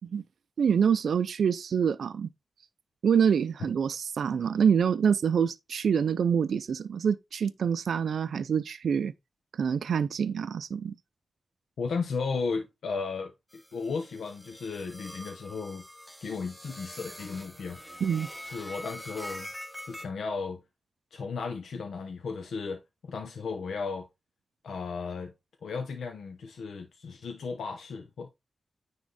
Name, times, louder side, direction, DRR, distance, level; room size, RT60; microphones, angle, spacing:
voice 1, 0.6-2.3 3.0-9.1 9.6-10.9 18.0-18.3, right 7 dB, 80° right, 0.4 m, -26 dB
voice 2, 11.8-15.8 16.2-17.8 18.5-19.5 19.8-20.6 21.1-24.0 24.6-25.3 25.6-28.3, left 4 dB, 85° left, 1.1 m, -35 dB
sound 1, 13.5-20.1, equal, ahead, 0.8 m, -44 dB
9.6 x 3.6 x 4.1 m
wide cardioid pair, 135°, 0 cm